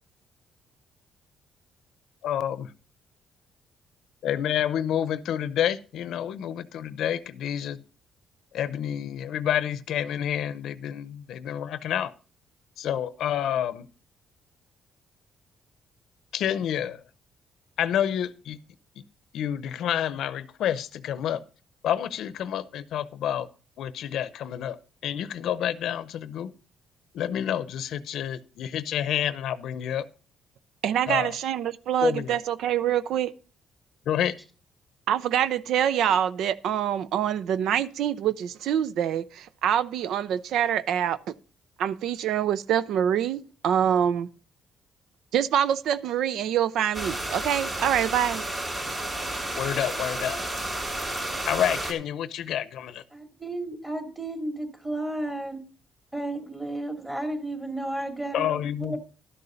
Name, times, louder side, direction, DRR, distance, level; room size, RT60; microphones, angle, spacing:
voice 1, 2.2-2.7 4.2-7.8 8.5-12.1 12.8-13.9 16.3-17.0 17.8-18.6 19.3-21.4 21.8-23.5 23.8-24.8 25.0-26.5 27.1-30.0 31.1-31.3 32.0-32.4 34.1-34.3 49.6-50.4 51.5-53.0 58.3-59.0, left 10 dB, 75° left, 0.6 m, -28 dB
voice 2, 30.8-33.3 35.1-41.2 41.8-44.3 45.3-48.4, right 9 dB, 80° right, 0.4 m, -25 dB
sound 1, 46.9-51.9, right 1 dB, 35° right, 3.6 m, -31 dB
voice 3, 53.1-55.6 56.1-59.0, right 1 dB, 15° right, 2.5 m, -33 dB
12.0 x 6.8 x 5.0 m
cardioid pair, 90°, 0 cm